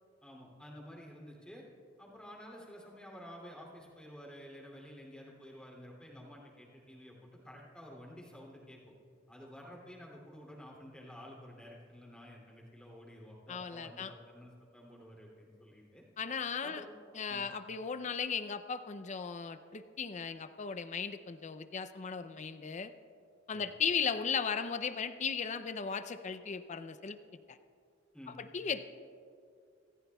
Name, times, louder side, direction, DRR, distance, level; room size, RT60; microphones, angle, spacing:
voice 1, 0.2-1.6 2.0-8.9 9.3-16.0 16.4-16.9 17.3-17.5 23.5-23.7 28.1-28.4, equal, 5° left, -3 dB, 2.7 m, -51 dB
voice 2, 13.5-14.1 16.2-16.8 17.2-22.9 23.5-27.2 27.5-27.6 28.5-28.8, left 6 dB, 35° left, 11 dB, 0.5 m, -36 dB
27.0 x 14.0 x 2.3 m, 2.3 s
head